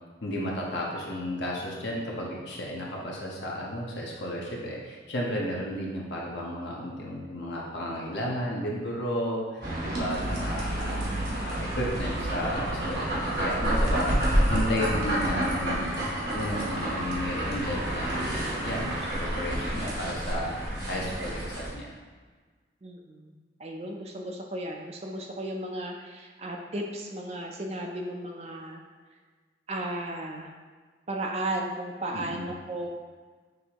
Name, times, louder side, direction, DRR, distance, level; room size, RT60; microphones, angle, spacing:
voice 1, 0.2-11.0 11.3-16.0 16.3-21.9 32.1-32.5, equal, 75° left, -3 dB, 0.9 m, -33 dB
sound 1, 9.6-21.7, right 1 dB, 70° right, 1.1 m, -29 dB
voice 2, 22.8-23.3 23.6-28.8 29.7-30.5 31.1-32.9, right 1 dB, 35° right, 2 dB, 0.4 m, -35 dB
6.3 x 2.7 x 2.9 m, 1.5 s
head